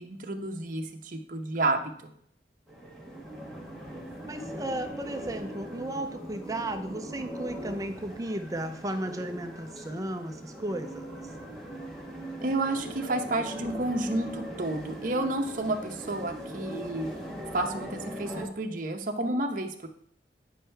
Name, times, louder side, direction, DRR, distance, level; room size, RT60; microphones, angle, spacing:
voice 1, 0.0-2.1 12.4-17.1 17.5-19.9, right 2 dB, 50° right, 3 dB, 0.9 m, -30 dB
sound 1, 2.7-18.5, right 1 dB, 5° left, 1.2 m, -40 dB
voice 2, 4.3-11.3, right 1 dB, 20° right, 7 dB, 0.5 m, -35 dB
9.3 x 5.5 x 3.4 m, 0.66 s
head